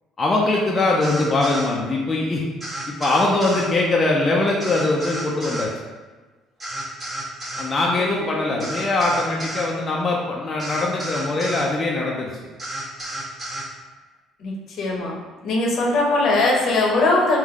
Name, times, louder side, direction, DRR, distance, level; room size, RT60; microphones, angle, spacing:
voice 1, 0.2-2.4 2.9-5.7 7.6-12.3, left 2 dB, 35° left, -3 dB, 0.6 m, -22 dB
sound 1, 1.0-1.7 2.6-3.7 4.6-5.7 6.6-7.7 8.6-9.7 10.6-11.7 12.6-13.7, right 1 dB, 25° right, 1.5 m, -31 dB
voice 2, 14.4-15.2 15.4-17.4, left 2 dB, 65° left, -1 dB, 0.9 m, -20 dB
3.5 x 2.7 x 3.6 m, 1.3 s
supercardioid pair, 75°, 0 cm